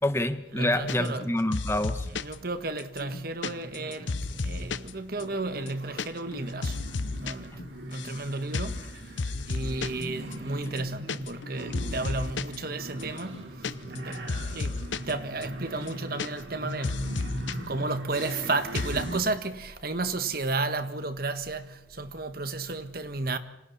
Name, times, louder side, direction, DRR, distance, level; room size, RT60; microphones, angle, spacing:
voice 1, 0.0-2.1, left 1 dB, 15° left, 1.1 m, -27 dB
voice 2, 0.5-1.4 2.1-4.1 4.4-6.8 7.2-7.6 7.9-8.9 9.4-13.5 14.0-14.2 14.5-17.1 17.7-23.4, right 3 dB, 50° right, 1.6 m, -33 dB
sound 1, 0.9-1.3 1.5-2.4 2.8-4.9 5.2-5.3 5.6-6.1 6.3-7.3 7.6-8.2 8.5-8.9 9.2-10.0 10.3-10.4 10.7-11.5 11.7-12.6 13.0-15.1 15.4-15.5 15.8-16.6 16.8-17.5 17.8-18.4 18.7-19.1, left 3 dB, 90° left, 0.9 m, -33 dB
sound 2, 3.4-19.2, right 1 dB, 70° right, 4.2 m, -40 dB
27.5 x 26.0 x 4.3 m
head